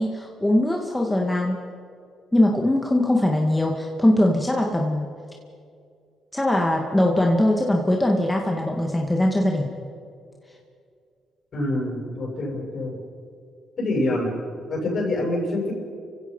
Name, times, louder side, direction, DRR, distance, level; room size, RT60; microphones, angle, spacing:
voice 1, 0.0-1.6 2.3-5.1 6.3-9.7, left 1 dB, 10° left, 0 dB, 2.1 m, -21 dB
voice 2, 11.5-13.0 13.8-14.3 14.7-15.7, left 1 dB, 55° left, 0 dB, 7.5 m, -26 dB
28.5 x 16.0 x 5.5 m, 2.3 s
cardioid pair, 90°, 0 cm